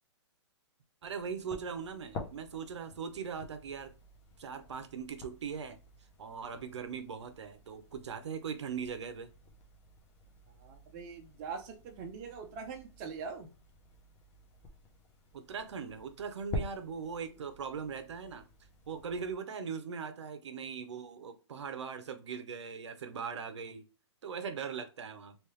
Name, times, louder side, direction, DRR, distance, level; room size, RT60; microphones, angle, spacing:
sound 1, 1.0-19.3, left 2 dB, 15° left, 0.7 m, -48 dB
voice 1, 1.0-3.9 4.4-5.8 6.2-9.3 15.3-18.4 18.9-23.8 24.2-25.4, right 6 dB, 75° right, 0.7 m, -40 dB
voice 2, 10.6-13.5, right 5 dB, 25° right, 0.6 m, -43 dB
3.3 x 2.7 x 3.1 m
hypercardioid pair, 160°, 15 cm